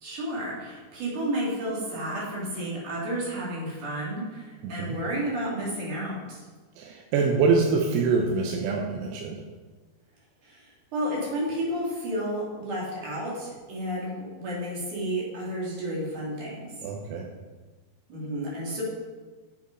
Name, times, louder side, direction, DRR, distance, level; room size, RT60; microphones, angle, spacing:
voice 1, 0.0-6.4 10.5-10.6 10.9-16.7 18.1-18.8, right 1 dB, 50° right, -5 dB, 3.3 m, -31 dB
voice 2, 4.6-5.0 6.8-9.4 16.8-17.3, right 4 dB, 80° right, 1 dB, 2.7 m, -25 dB
7.7 x 7.1 x 5.0 m, 1.3 s
omnidirectional pair, 5.0 m